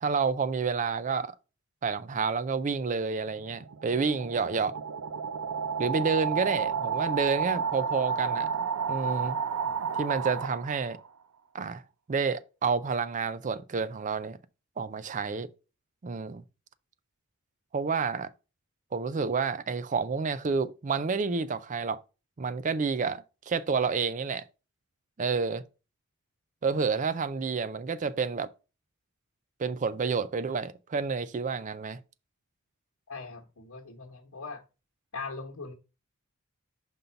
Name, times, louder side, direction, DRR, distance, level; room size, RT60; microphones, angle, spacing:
voice 1, 0.0-1.3 1.8-4.8 5.8-8.5 8.9-9.4 10.0-11.0 11.5-11.8 12.1-14.4 14.8-15.5 16.0-16.4 17.7-18.3 18.9-22.0 22.4-24.4 25.2-25.6 26.6-28.5 29.6-32.0, right 5 dB, 35° right, 0.4 m, -29 dB
sound 1, 3.4-11.1, right 6 dB, 85° right, 0.5 m, -31 dB
voice 2, 33.1-34.6 35.1-35.7, left 4 dB, 80° left, 1.2 m, -40 dB
5.4 x 3.9 x 5.6 m
head